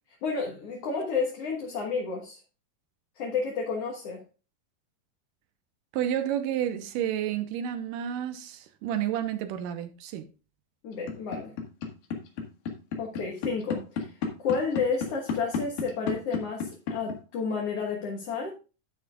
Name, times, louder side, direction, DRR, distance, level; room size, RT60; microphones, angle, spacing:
voice 1, 0.2-2.4 3.2-4.2 10.8-11.5 13.0-18.5, left 5 dB, 55° left, 2.2 m, -31 dB
voice 2, 5.9-10.3, right 10 dB, 90° right, 2.5 m, -30 dB
sound 1, 10.9-17.1, left 5 dB, 75° left, 3.3 m, -30 dB
10.5 x 9.4 x 2.4 m
omnidirectional pair, 3.8 m